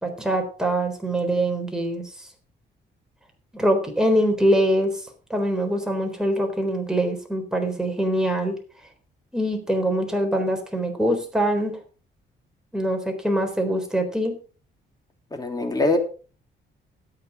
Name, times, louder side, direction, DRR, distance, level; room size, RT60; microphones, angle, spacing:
voice 1, 0.0-2.0 3.5-4.9 5.3-8.5 9.3-11.8 12.7-14.4, right 1 dB, 5° right, 3 dB, 3.9 m, -23 dB
voice 2, 15.3-16.0, left 2 dB, 20° left, 4 dB, 3.3 m, -23 dB
13.0 x 8.8 x 4.8 m, 0.37 s
cardioid pair, 110°, 20 cm